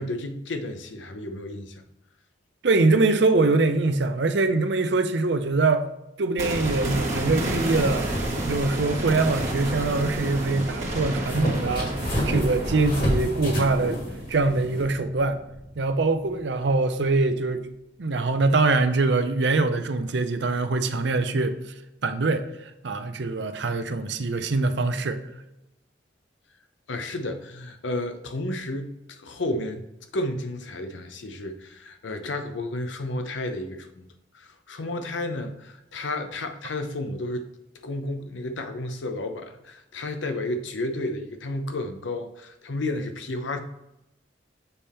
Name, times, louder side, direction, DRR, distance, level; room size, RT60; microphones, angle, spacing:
voice 1, 0.0-1.8 26.9-29.8 30.1-34.1 34.3-37.5 37.8-43.6, left 2 dB, 85° left, 7 dB, 0.7 m, -32 dB
voice 2, 2.6-5.8 6.2-8.1 8.4-14.0 14.3-15.4 15.8-17.7 18.0-21.6 22.0-25.2, right 3 dB, 70° right, 9 dB, 0.6 m, -23 dB
sound 1, 6.4-16.4 16.7-16.8, right 1 dB, 40° right, 1.3 m, -31 dB
sound 2, 7.7-14.8, equal, 55° left, 2.2 m, -31 dB
6.9 x 3.6 x 4.3 m, 0.90 s
head